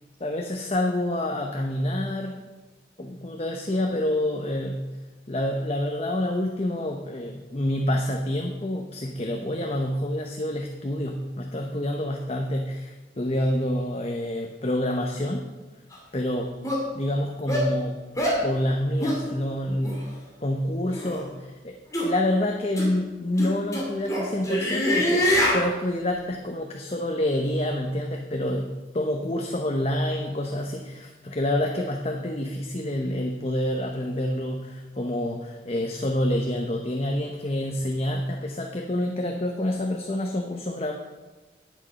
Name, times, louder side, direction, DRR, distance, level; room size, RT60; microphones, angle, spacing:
voice 1, 0.2-2.5 3.0-15.5 16.1-16.6 16.9-18.0 18.4-20.2 20.4-21.3 21.6-21.7 22.0-40.9, left 1 dB, 35° left, 3 dB, 0.8 m, -27 dB
sound 1, 15.9-16.0 16.6-16.8 17.5-17.7 18.2-18.4 19.0-19.2 19.8-20.0 20.9-21.2 21.9-22.1 22.8-22.9 23.4-25.6, equal, 20° left, 2.3 m, -24 dB
10.5 x 8.6 x 5.3 m, 1.2 s
head